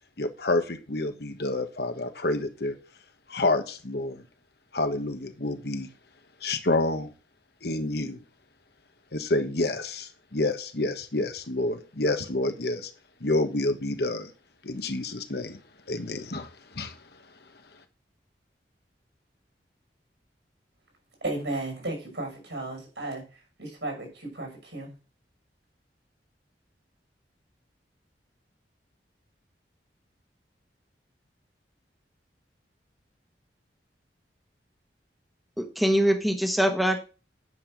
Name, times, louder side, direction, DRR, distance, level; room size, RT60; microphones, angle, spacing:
voice 1, 0.2-2.8 3.3-4.2 4.7-5.9 6.4-7.1 7.6-8.2 9.1-12.9 13.2-14.3 14.6-15.6 15.9-17.0, left 2 dB, 65° left, 8 dB, 1.3 m, -28 dB
voice 2, 21.2-23.2 23.6-24.9, right 2 dB, 80° right, 2 dB, 6.0 m, -34 dB
voice 3, 35.6-37.0, equal, ahead, 4 dB, 1.2 m, -23 dB
9.8 x 5.7 x 6.3 m, 0.35 s
head